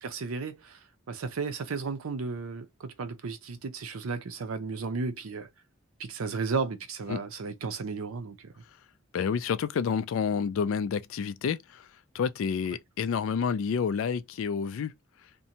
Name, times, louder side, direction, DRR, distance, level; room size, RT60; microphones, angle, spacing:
voice 1, 0.0-5.5 6.0-8.5, right 4 dB, 85° right, 0.6 m, -34 dB
voice 2, 9.1-11.9 12.1-14.9, left 6 dB, 70° left, 0.3 m, -29 dB
2.6 x 2.1 x 2.8 m
head